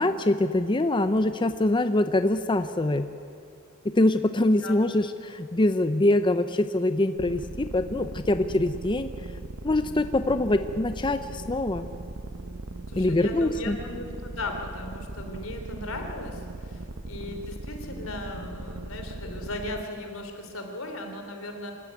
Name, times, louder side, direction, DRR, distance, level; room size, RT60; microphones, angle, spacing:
voice 1, 0.0-3.1 3.8-9.1 9.6-11.9 12.9-13.8, left 1 dB, 25° left, 10 dB, 0.6 m, -24 dB
sound 1, 7.2-19.8, right 2 dB, 65° right, 0.9 m, -39 dB
voice 2, 12.9-21.7, left 2 dB, 85° left, 4 dB, 3.2 m, -37 dB
25.5 x 13.5 x 9.3 m, 2.6 s
head